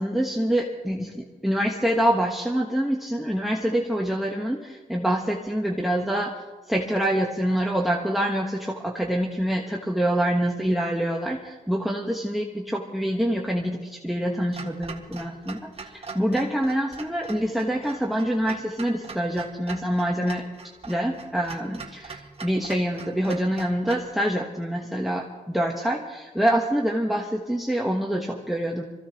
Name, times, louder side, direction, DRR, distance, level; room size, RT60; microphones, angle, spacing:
voice 1, 0.0-6.4 6.7-20.5 20.9-28.8, equal, ahead, -1 dB, 1.2 m, -26 dB
Clock, 14.5-24.1, right 4 dB, 35° right, 1.8 m, -42 dB
25.5 x 15.0 x 3.0 m, 1.2 s
wide cardioid pair, 100°, 16 cm